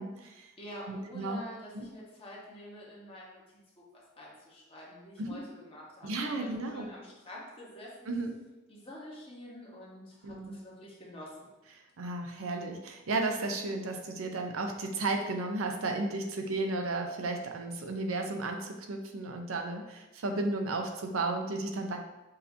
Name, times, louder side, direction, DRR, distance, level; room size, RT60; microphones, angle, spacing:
voice 1, 0.0-0.5 0.9-1.4 1.7-1.9 5.2-5.4 6.0-6.9 8.1-8.3 10.2-10.5 12.0-22.0, right 2 dB, 90° right, 4 dB, 0.6 m, -34 dB
voice 2, 0.6-3.4 3.8-7.9 8.7-11.5, left 1 dB, 25° left, -5 dB, 1.1 m, -47 dB
6.3 x 2.8 x 2.7 m, 1.0 s
head